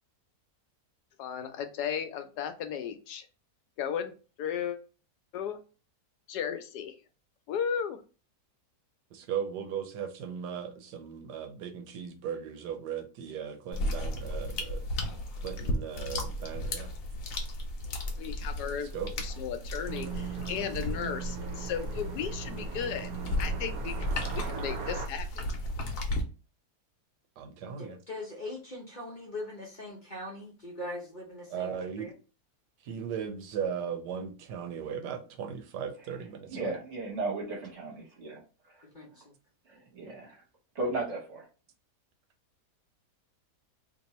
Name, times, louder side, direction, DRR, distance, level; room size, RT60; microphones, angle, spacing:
voice 1, 1.2-3.3 3.8-4.1 4.4-4.8 5.3-5.6 6.3-6.9 7.5-8.0 18.2-18.9 19.2-23.1 23.4-23.9 24.3-25.4, left 8 dB, 80° left, 1.2 m, -35 dB
voice 2, 9.1-14.8 15.4-16.9 18.9-19.1 27.4-28.0 31.5-32.1 32.8-36.7, right 8 dB, 85° right, 1.3 m, -37 dB
sound 1, 13.7-26.2, left 1 dB, 60° left, 1.1 m, -35 dB
sound 2, 19.9-25.1, right 5 dB, 65° right, 1.1 m, -39 dB
voice 3, 27.8-32.1 38.9-39.2, left 1 dB, 40° left, 0.7 m, -41 dB
voice 4, 36.5-38.9 39.6-40.4 40.7-41.5, right 2 dB, 45° right, 1.2 m, -36 dB
2.9 x 2.7 x 4.1 m
omnidirectional pair, 1.8 m